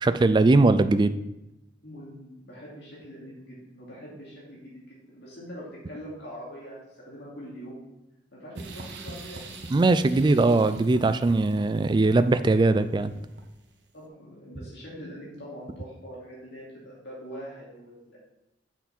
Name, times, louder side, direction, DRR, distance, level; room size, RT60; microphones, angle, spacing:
voice 1, 0.0-1.2 9.7-13.1, right 2 dB, 25° right, 12 dB, 0.3 m, -20 dB
voice 2, 1.8-7.8 8.3-9.7 10.1-10.3 13.9-18.2, equal, 65° left, -6 dB, 2.8 m, -43 dB
sound 1, 8.6-13.7, right 3 dB, 75° right, 0.9 m, -44 dB
7.0 x 5.8 x 4.3 m, 0.93 s
head